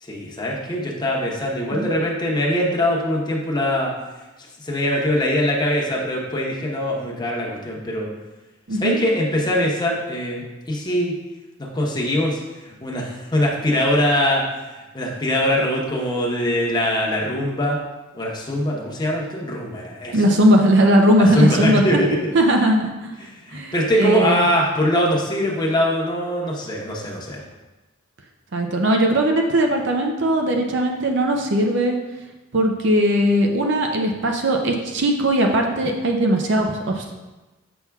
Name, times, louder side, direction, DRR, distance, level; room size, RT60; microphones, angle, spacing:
voice 1, 0.0-3.9 4.6-8.1 8.7-11.1 11.6-17.8 18.1-20.2 21.3-22.2 23.2-27.4 35.8-35.9, left 1 dB, 20° left, -3 dB, 1.0 m, -22 dB
voice 2, 20.1-22.0 22.3-22.8 23.5-23.7 24.0-24.4 28.5-32.0 32.5-37.1, right 1 dB, 65° right, 2 dB, 0.6 m, -19 dB
7.1 x 5.7 x 2.3 m, 1.1 s
head